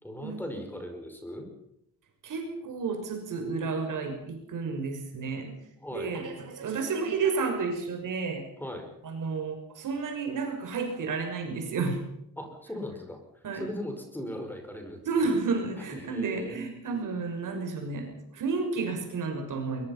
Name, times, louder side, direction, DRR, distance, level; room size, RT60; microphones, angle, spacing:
voice 1, 0.0-1.5 5.8-6.2 8.6-8.9 12.4-15.3 15.8-16.7, left 1 dB, 5° left, 4 dB, 5.2 m, -39 dB
voice 2, 2.2-5.6 5.9-8.5 9.0-12.0 13.4-13.6 15.0-19.9, right 4 dB, 65° right, 4 dB, 6.1 m, -31 dB
23.0 x 22.5 x 5.8 m, 0.79 s
wide cardioid pair, 170°, 34 cm